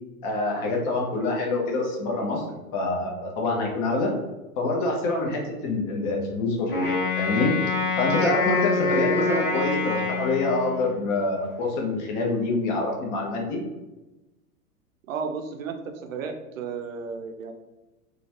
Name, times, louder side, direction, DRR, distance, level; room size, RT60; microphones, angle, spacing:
voice 1, 0.2-4.1 4.6-6.9 7.2-7.5 8.0-13.6, left 2 dB, 35° left, 0 dB, 0.7 m, -26 dB
Wind instrument woodwind instrument, 6.7-11.1, left 3 dB, 75° left, 1.1 m, -26 dB
voice 2, 15.1-17.5, right 5 dB, 65° right, 5 dB, 0.5 m, -33 dB
2.9 x 2.4 x 2.8 m, 1.0 s
figure-of-eight pair, 95°, 44 cm